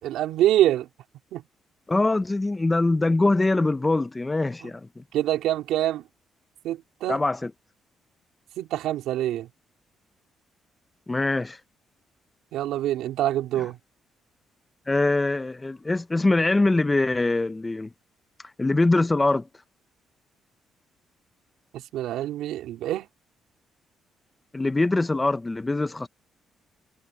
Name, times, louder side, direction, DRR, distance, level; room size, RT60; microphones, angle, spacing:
voice 1, 0.0-0.9 1.3-1.4 4.6-4.7 5.1-6.0 6.6-7.2 8.6-9.5 12.5-13.8 21.7-23.1, right 13 dB, 90° right, 4.2 m, -25 dB
voice 2, 1.9-5.0 7.1-7.5 11.1-11.6 14.9-17.9 18.6-19.5 24.5-26.1, left 2 dB, 20° left, 0.9 m, -23 dB
cardioid pair, 90°, 0 cm